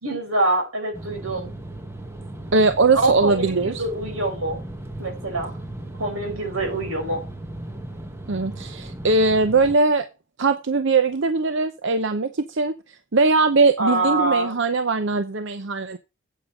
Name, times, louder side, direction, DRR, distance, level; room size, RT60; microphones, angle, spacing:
voice 1, 0.0-1.5 2.9-4.6 5.0-5.5 6.0-7.2 13.8-14.6, right 2 dB, 85° right, 3 dB, 5.5 m, -25 dB
sound 1, 0.9-9.8, right 1 dB, 10° right, 1.2 m, -36 dB
voice 2, 2.5-3.8 8.3-10.1 10.4-12.7 13.1-16.0, right 3 dB, 60° right, 10 dB, 0.7 m, -20 dB
8.7 x 8.6 x 4.8 m, 0.27 s
head